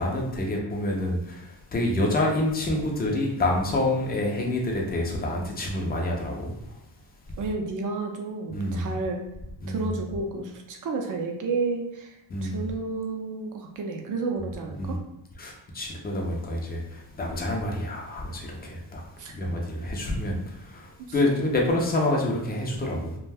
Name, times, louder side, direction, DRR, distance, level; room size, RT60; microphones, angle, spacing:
voice 1, 0.0-6.5 8.5-8.9 9.6-9.9 12.3-12.6 14.8-15.0 15.4-19.0 19.3-23.2, left 1 dB, 20° left, -1 dB, 0.5 m, -27 dB
voice 2, 7.4-9.2 9.7-12.2 12.4-15.0 19.2-19.3, right 3 dB, 45° right, 3 dB, 0.5 m, -31 dB
2.5 x 2.2 x 3.4 m, 0.85 s
cardioid pair, 135°, 46 cm